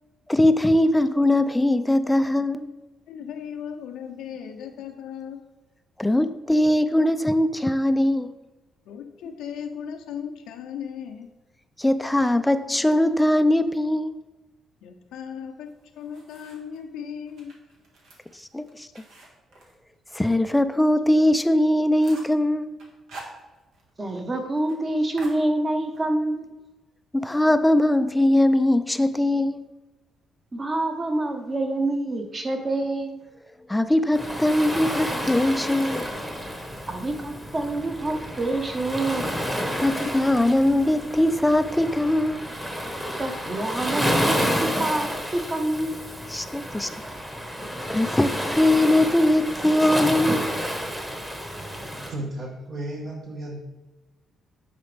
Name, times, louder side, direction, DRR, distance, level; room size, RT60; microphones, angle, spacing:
voice 1, 0.3-2.8 6.0-8.3 11.8-14.2 18.5-19.0 20.1-22.8 27.1-29.6 33.7-36.0 39.8-42.5 46.3-46.9 47.9-50.6 51.9-52.1, left 1 dB, 10° left, 0.3 m, -21 dB
voice 2, 3.1-5.5 8.9-11.3 14.8-17.6, left 8 dB, 90° left, 0.5 m, -37 dB
sound 1, 15.7-16.8 17.3-20.5 20.8-20.9 21.3-21.4 21.7-22.4 22.8-23.9 24.2-24.3 24.6-24.8 25.2-26.0, right 2 dB, 75° right, 1.6 m, -46 dB
voice 3, 24.0-26.5 30.5-33.2 36.9-39.3 43.2-46.0, right 2 dB, 30° right, 1.1 m, -27 dB
Waves surf, 34.1-52.1, equal, 10° right, 1.2 m, -30 dB
voice 4, 51.8-53.6, right 1 dB, 55° right, 1.3 m, -34 dB
9.5 x 4.0 x 3.4 m
cardioid pair, 90°, 0 cm